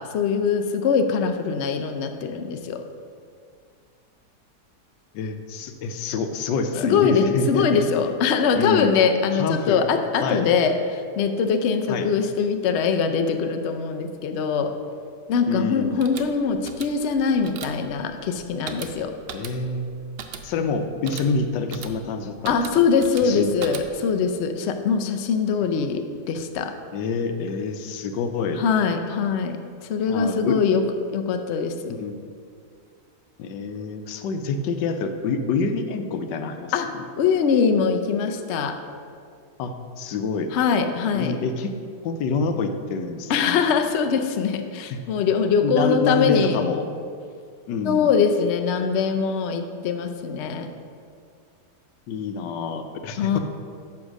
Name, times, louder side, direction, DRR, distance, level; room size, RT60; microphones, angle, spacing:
voice 1, 0.0-2.8 6.8-14.7 15.3-19.1 22.5-26.7 28.6-30.8 31.1-31.9 36.7-36.9 37.2-38.8 40.5-41.4 43.3-46.6 47.8-50.7 53.2-53.4, left 6 dB, 70° left, 6 dB, 0.6 m, -22 dB
voice 2, 5.1-7.9 8.5-9.0 9.4-9.8 10.2-10.4 11.9-12.1 15.5-16.0 19.3-20.0 20.4-22.6 23.2-23.5 26.9-28.6 30.1-30.6 31.9-32.2 33.4-37.0 39.6-40.5 41.1-41.7 42.0-43.6 44.9-45.0 45.6-46.9 47.7-48.1 52.1-53.4, left 4 dB, 90° left, 7 dB, 1.3 m, -27 dB
sound 1, 15.8-24.2, right 7 dB, 90° right, 1.3 m, -40 dB
9.7 x 3.6 x 6.3 m, 2.3 s
omnidirectional pair, 1.8 m